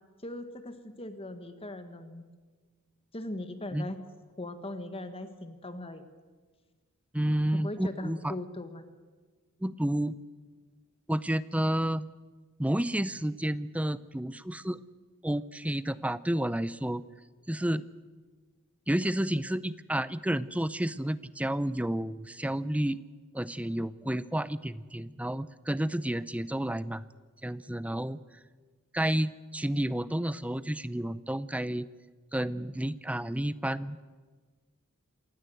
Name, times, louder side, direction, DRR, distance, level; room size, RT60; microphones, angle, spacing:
voice 1, 0.2-2.3 3.1-4.0 4.4-6.0 7.5-8.8, left 1 dB, 25° left, 9 dB, 1.5 m, -39 dB
voice 2, 7.1-8.3 9.6-10.1 11.1-12.1 12.6-14.8 15.2-17.0 17.5-17.8 18.9-23.0 23.3-27.0 27.4-28.2 28.9-31.9 32.3-34.0, right 1 dB, 5° right, 16 dB, 0.6 m, -30 dB
27.5 x 16.5 x 7.9 m, 1.4 s
head